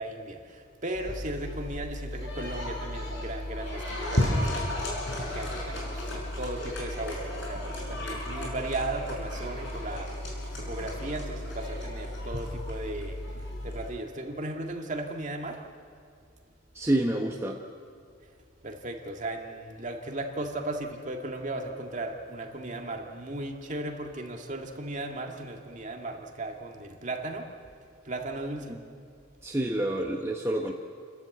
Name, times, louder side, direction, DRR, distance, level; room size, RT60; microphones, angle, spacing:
voice 1, 0.0-4.7 5.2-10.1 10.6-13.2 13.6-15.6 18.6-27.5 28.0-28.8, right 2 dB, 35° right, 2 dB, 2.0 m, -36 dB
sound 1, 1.0-13.9, left 1 dB, 60° left, 6.3 m, -34 dB
voice 2, 16.7-17.6 28.7-28.8 29.4-30.7, right 1 dB, 15° right, 0 dB, 1.0 m, -28 dB
29.5 x 12.5 x 7.9 m, 2.3 s
head